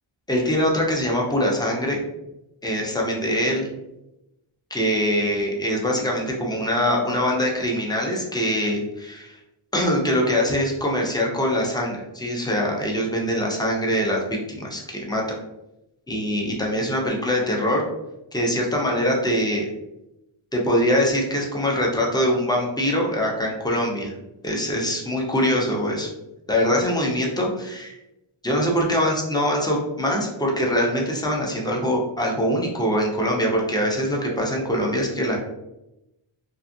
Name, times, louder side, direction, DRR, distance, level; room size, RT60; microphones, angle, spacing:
voice 1, 0.3-2.0 2.6-3.7 4.7-9.4 9.7-14.2 14.5-15.2 16.1-17.9 18.3-19.7 20.5-24.1 24.4-26.1 26.5-28.0 28.4-35.4, equal, 10° left, -1 dB, 0.3 m, -23 dB
2.5 x 2.4 x 2.5 m, 0.93 s
wide cardioid pair, 150°, 50 cm